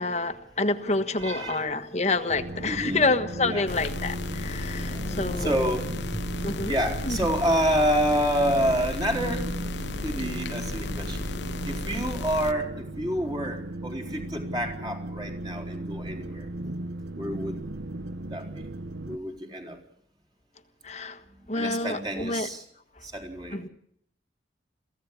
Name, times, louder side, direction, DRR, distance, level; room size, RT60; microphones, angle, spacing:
voice 1, 0.0-5.6 6.4-6.7 7.0-7.2 20.8-21.2 21.5-22.5 23.5-23.7, left 3 dB, 35° left, 9 dB, 1.5 m, -28 dB
voice 2, 1.2-1.7 2.4-3.1 3.4-3.7 4.3-9.5 9.8-16.5 17.2-17.6 18.3-18.7 19.1-19.8 21.4-22.7 23.0-23.6, equal, 25° right, 2 dB, 4.3 m, -29 dB
sound 1, 2.3-19.2, right 1 dB, 75° right, 1.0 m, -36 dB
sound 2, 3.7-12.5, left 2 dB, 80° left, 1.0 m, -34 dB
23.5 x 16.0 x 8.5 m, 0.69 s
head